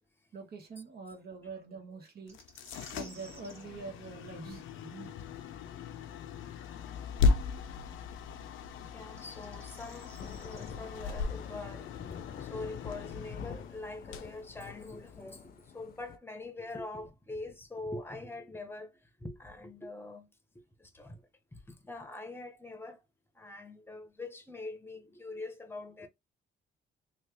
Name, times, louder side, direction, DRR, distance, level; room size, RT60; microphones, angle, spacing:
voice 1, 0.3-2.4 2.9-5.1, right 4 dB, 50° right, 1.3 m, -45 dB
sound 1, 2.3-15.2, left 4 dB, 85° left, 0.6 m, -36 dB
sound 2, 2.3-3.7 6.8-6.9 9.0-10.7, right 2 dB, 15° right, 1.4 m, -55 dB
voice 2, 8.9-10.1 10.4-11.9 12.4-20.3 20.5-21.2 21.5-23.0 23.4-26.1, left 2 dB, 10° left, 0.9 m, -44 dB
Thunder / Rain, 10.2-16.2, left 6 dB, 50° left, 0.6 m, -47 dB
3.1 x 2.4 x 3.4 m
cardioid pair, 90°, 20 cm